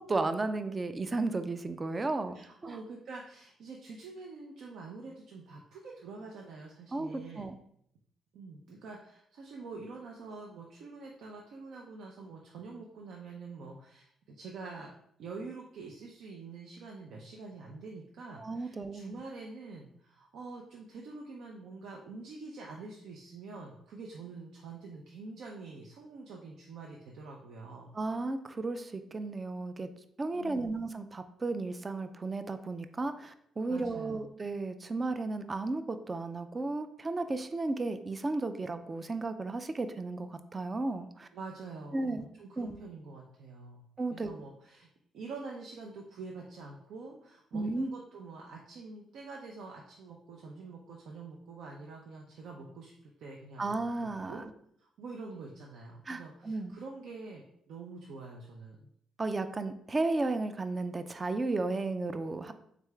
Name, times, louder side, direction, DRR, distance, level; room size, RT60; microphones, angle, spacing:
voice 1, 0.1-2.3 2.6-2.8 6.9-7.5 18.4-19.2 28.0-29.9 30.2-41.3 41.9-42.3 42.6-42.8 44.0-44.3 47.5-47.9 53.6-54.4 56.1-56.7 59.2-62.5, right 3 dB, 30° right, 9 dB, 0.4 m, -34 dB
voice 2, 2.3-7.5 8.3-14.9 15.2-27.9 30.3-30.7 33.6-34.3 41.3-43.8 44.1-44.9 45.1-53.7 54.0-54.5 54.8-58.9, right 3 dB, 75° right, -1 dB, 0.6 m, -46 dB
3.7 x 3.4 x 3.2 m, 0.70 s
cardioid pair, 90°, 0 cm